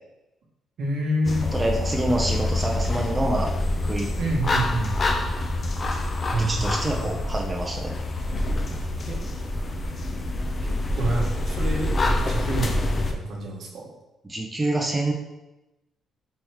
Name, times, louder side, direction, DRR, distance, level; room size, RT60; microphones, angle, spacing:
voice 1, 0.8-1.5 4.2-5.0 6.3-7.2 9.1-9.2 10.6-13.9, right 1 dB, 70° right, -1 dB, 0.9 m, -28 dB
sound 1, 1.2-13.1, left 1 dB, 40° left, 0.5 m, -26 dB
voice 2, 1.5-3.5 3.9-4.1 6.4-7.9 14.3-15.1, right 1 dB, 15° right, 0 dB, 0.6 m, -26 dB
3.5 x 3.0 x 3.0 m, 0.97 s
cardioid pair, 90°, 0 cm